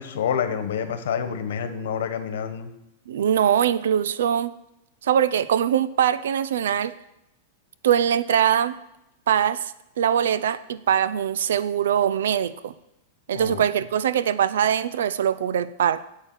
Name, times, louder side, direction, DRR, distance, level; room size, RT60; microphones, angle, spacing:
voice 1, 0.0-2.7 13.3-13.6, left 7 dB, 80° left, 9 dB, 1.3 m, -28 dB
voice 2, 3.1-4.5 5.0-6.9 7.8-8.8 9.3-12.7 13.3-16.0, right 9 dB, 85° right, 15 dB, 0.6 m, -22 dB
8.3 x 6.6 x 7.9 m, 0.86 s
supercardioid pair, 155°, 0 cm